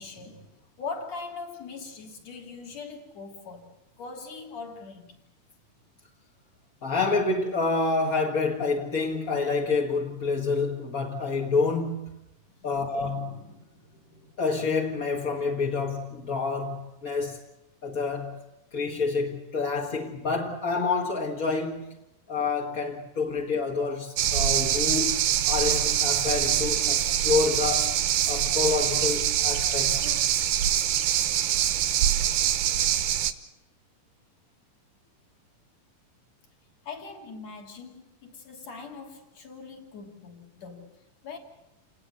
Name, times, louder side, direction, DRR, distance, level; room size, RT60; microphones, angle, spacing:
voice 1, 0.0-5.2 12.5-14.4 36.8-41.0 41.2-41.4, left 4 dB, 50° left, 4.1 m, -42 dB
voice 2, 6.8-12.1 12.6-13.4 14.4-17.4 17.8-18.4 18.7-21.9 22.3-25.2 25.5-30.1, left 4 dB, 35° left, 1.6 m, -28 dB
sound 1, 24.2-33.3, right 11 dB, 85° right, 2.9 m, -24 dB
29.0 x 19.0 x 7.0 m
omnidirectional pair, 4.0 m